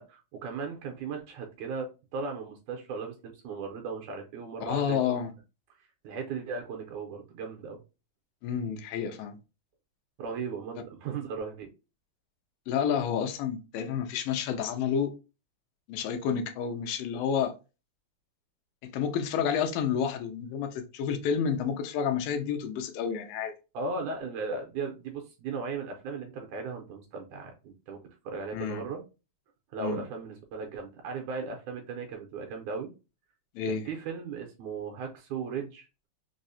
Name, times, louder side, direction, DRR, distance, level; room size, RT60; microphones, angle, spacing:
voice 1, 0.0-5.2 6.0-7.8 10.2-11.7 23.7-28.0 28.3-29.0 29.7-32.9 33.7-35.9, right 5 dB, 80° right, 1.8 m, -37 dB
voice 2, 4.6-5.3 8.4-9.4 12.7-15.2 15.9-17.5 18.9-23.5 28.5-28.8 29.8-30.0 33.6-33.8, left 7 dB, 90° left, 2.3 m, -30 dB
5.4 x 2.0 x 2.5 m
omnidirectional pair, 3.9 m